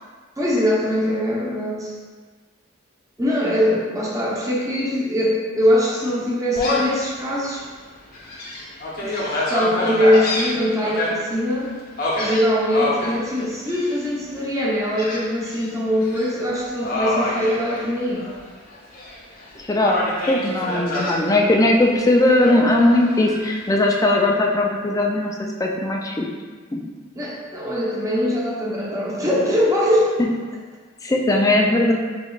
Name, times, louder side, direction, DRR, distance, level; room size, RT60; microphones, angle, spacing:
voice 1, 0.4-1.9 3.2-7.6 9.0-11.7 12.2-18.2 27.1-30.1, equal, 15° right, -6 dB, 0.8 m, -22 dB
Gull seagull, 6.6-7.0 7.5-7.6 8.1-11.1 12.0-13.1 13.7-14.1 15.0-15.7 16.0-16.3 16.8-18.4 18.7-19.4 19.8-21.2 22.4-23.4, left 2 dB, 45° left, 0.8 m, -26 dB
voice 2, 19.6-20.0 20.3-25.3 25.6-26.3 26.7-26.8 31.0-31.9, left 1 dB, 15° left, 0 dB, 0.4 m, -18 dB
5.1 x 3.0 x 2.4 m, 1.5 s
head